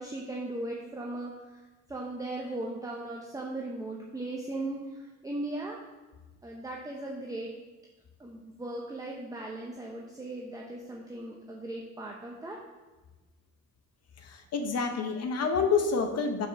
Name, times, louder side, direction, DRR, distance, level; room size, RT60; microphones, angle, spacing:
voice 1, 0.0-1.4 1.9-5.8 6.4-7.6 8.2-12.6, right 2 dB, 10° right, -1 dB, 0.8 m, -38 dB
voice 2, 14.2-16.5, left 5 dB, 55° left, 6 dB, 1.0 m, -28 dB
5.1 x 4.9 x 5.7 m, 1.2 s
cardioid pair, 90°, 30 cm